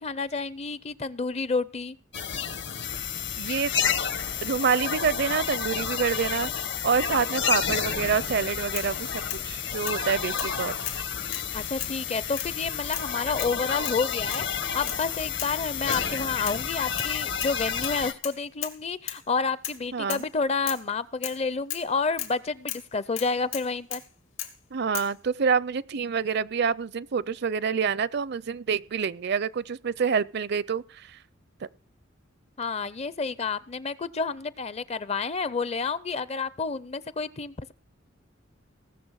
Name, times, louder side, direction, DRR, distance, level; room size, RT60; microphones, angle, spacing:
voice 1, 0.0-2.0 11.5-24.0 32.6-37.7, left 4 dB, 30° left, 0.5 m, -30 dB
sound 1, 2.1-18.1, left 7 dB, 60° left, 1.1 m, -30 dB
voice 2, 3.4-3.7 4.4-9.1 9.5-10.7 19.9-20.2 24.7-31.2, right 6 dB, 55° right, 0.5 m, -27 dB
sound 2, 8.2-8.3 8.7-9.4 9.9-10.0 10.4-10.6 10.8-11.5 11.8-12.0 12.4-12.5 12.9-13.1 13.4-13.6 13.8-14.0 14.3-14.5 14.9-15.0 15.4-15.6 15.9-16.1 16.5-17.1 17.4-17.6 17.8-18.8 19.1-19.2 19.6-19.8 20.1-20.3 20.7-20.8 21.2-21.4 21.7-21.9 22.2-22.3 22.7-22.9 23.2-24.1 24.4-24.6 24.9-25.1, left 12 dB, 80° left, 2.5 m, -36 dB
18.5 x 6.9 x 6.3 m
head